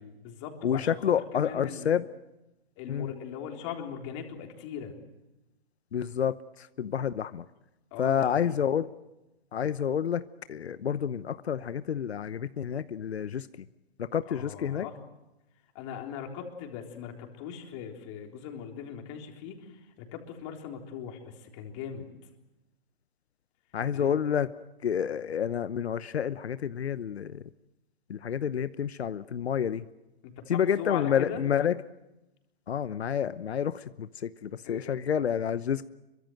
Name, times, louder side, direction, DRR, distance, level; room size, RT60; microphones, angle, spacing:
voice 1, 0.0-1.0 1.3-1.9 2.8-4.9 7.9-8.6 14.3-15.0 15.8-22.0 23.9-24.1 30.2-31.4 34.6-35.0, left 8 dB, 30° left, 2 dB, 3.7 m, -40 dB
voice 2, 0.6-2.1 2.9-3.1 5.9-7.4 8.0-8.9 9.5-10.2 10.5-13.5 14.1-14.9 23.7-24.5 24.8-27.4 28.1-29.8 30.5-31.8 32.7-35.9, left 8 dB, 90° left, 14 dB, 1.0 m, -29 dB
26.0 x 23.5 x 7.9 m, 0.98 s
hypercardioid pair, 160°, 31 cm